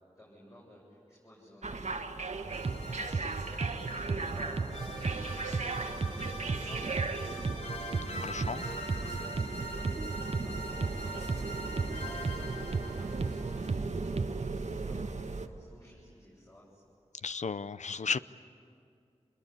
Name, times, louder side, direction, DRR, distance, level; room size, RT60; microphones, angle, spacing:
voice 1, 0.2-8.7 9.0-15.0 15.2-16.8, left 1 dB, 25° left, -6 dB, 7.9 m, -55 dB
sound 1, 1.6-15.5, right 3 dB, 80° right, 1.5 m, -38 dB
sound 2, 2.5-13.8, left 1 dB, 65° left, 3.0 m, -44 dB
sound 3, 2.5-14.5, right 4 dB, 55° right, 0.8 m, -36 dB
voice 2, 8.2-8.6 17.2-18.2, left 5 dB, 80° left, 14 dB, 0.7 m, -34 dB
27.0 x 22.0 x 10.0 m, 2.4 s
wide cardioid pair, 70°, 12 cm